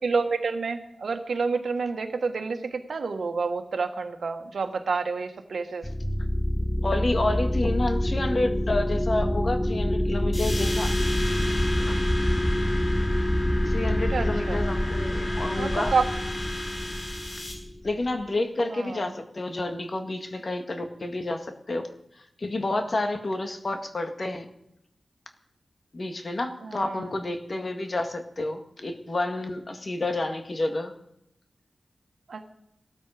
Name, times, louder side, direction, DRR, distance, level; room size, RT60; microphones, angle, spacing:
voice 1, 0.0-5.8 14.1-14.6 15.6-16.1 18.7-19.0 26.6-27.1 32.3-32.5, right 4 dB, 80° right, 6 dB, 1.4 m, -29 dB
sound 1, 5.8-18.1, left 1 dB, 10° left, 0.8 m, -26 dB
voice 2, 6.8-11.0 11.6-12.0 13.7-15.9 17.8-21.9 22.4-24.5 25.9-30.9, left 2 dB, 45° left, 6 dB, 1.8 m, -29 dB
sound 2, 10.3-17.5, left 1 dB, 60° left, 6.1 m, -36 dB
18.0 x 13.5 x 5.0 m, 0.76 s
wide cardioid pair, 105°, 0 cm